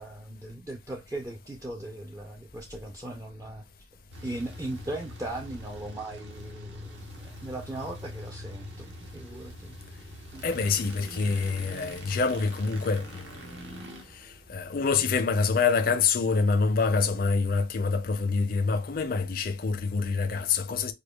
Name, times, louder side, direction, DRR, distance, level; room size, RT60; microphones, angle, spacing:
voice 1, 0.0-3.6 4.2-8.9 9.1-9.8 10.3-10.5, right 2 dB, 15° right, 0.4 m, -38 dB
sound 1, 4.1-15.2, equal, 65° right, 0.8 m, -44 dB
voice 2, 10.4-13.5 14.5-20.9, left 4 dB, 45° left, 0.5 m, -26 dB
4.9 x 2.2 x 2.2 m
head